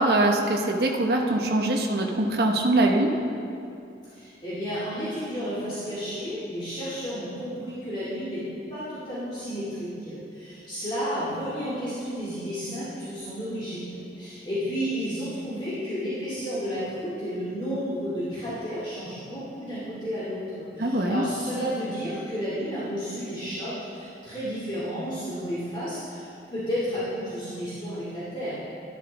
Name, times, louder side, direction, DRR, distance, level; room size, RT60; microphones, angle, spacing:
voice 1, 0.0-3.1 20.8-21.2, right 1 dB, 60° right, 1 dB, 0.9 m, -23 dB
voice 2, 4.1-8.4 8.7-28.6, equal, 30° left, -12 dB, 2.3 m, -32 dB
12.5 x 11.5 x 3.5 m, 2.5 s
head